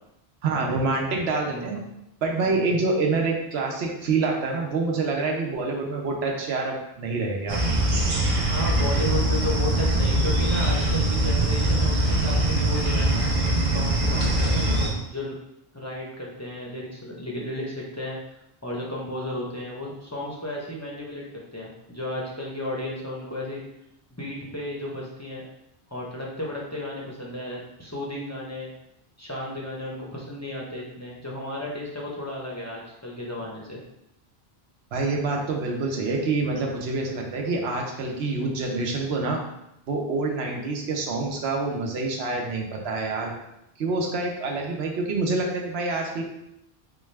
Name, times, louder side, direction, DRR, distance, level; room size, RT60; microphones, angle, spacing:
voice 1, 0.4-1.8 2.2-7.6 34.9-39.4 39.9-43.3 43.8-46.2, right 3 dB, 80° right, 0 dB, 1.0 m, -26 dB
voice 2, 1.5-1.8 8.5-13.2 13.7-15.3 15.7-18.2 18.6-23.6 24.1-25.4 25.9-28.7 29.2-33.8, left 1 dB, 20° left, -4 dB, 0.5 m, -33 dB
sound 1, 7.5-14.9, right 1 dB, 40° right, 0.6 m, -22 dB
4.1 x 2.3 x 3.2 m, 0.84 s
omnidirectional pair, 1.0 m